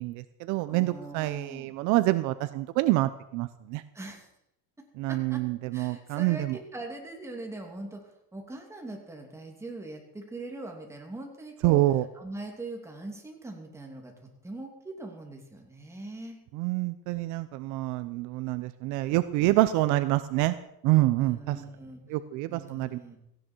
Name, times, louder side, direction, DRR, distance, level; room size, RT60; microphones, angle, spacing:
voice 1, 0.0-3.8 5.0-6.6 11.6-12.0 16.5-20.6 20.8-21.6 22.1-23.0, right 17 dB, 60° right, 13 dB, 0.8 m, -26 dB
voice 2, 0.7-1.7 3.9-4.3 5.1-5.4 5.7-8.0 8.3-11.8 12.1-16.4 21.2-22.0 22.5-23.2, right 2 dB, 10° right, 2 dB, 2.9 m, -41 dB
17.5 x 15.5 x 4.6 m, 0.78 s
cardioid pair, 150°, 34 cm